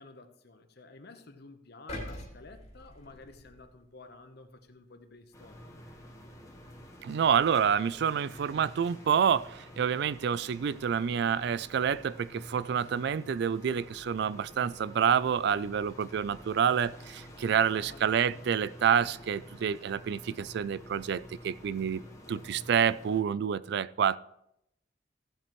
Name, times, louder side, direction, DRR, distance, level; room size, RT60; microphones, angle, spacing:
voice 1, 0.0-5.8 17.7-18.3 22.2-22.7, left 3 dB, 60° left, 1.0 m, -52 dB
sound 1, 1.9-4.0 4.5-4.7, left 1 dB, 35° left, 2.4 m, -43 dB
sound 2, 5.3-23.2, equal, 15° left, 1.3 m, -49 dB
voice 2, 7.0-22.0 22.3-24.2, right 7 dB, 65° right, 0.3 m, -28 dB
15.0 x 7.5 x 3.1 m
head